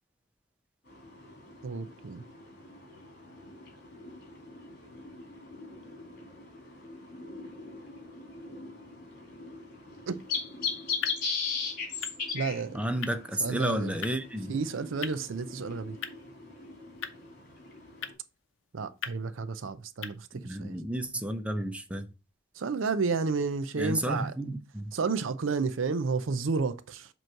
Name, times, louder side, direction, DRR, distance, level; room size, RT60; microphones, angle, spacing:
sound 1, 0.9-18.1, left 5 dB, 50° left, 2.7 m, -40 dB
voice 1, 1.6-2.2 10.1-10.2 12.3-12.8 13.4-13.9 14.5-16.0 18.7-20.8 22.6-24.3 24.9-27.1, right 4 dB, 70° right, 0.5 m, -31 dB
sound 2, 10.1-20.6, left 8 dB, 80° left, 0.7 m, -45 dB
voice 2, 12.7-14.5 20.3-22.1 23.8-24.9, right 1 dB, 5° right, 0.6 m, -32 dB
7.7 x 3.1 x 4.5 m
head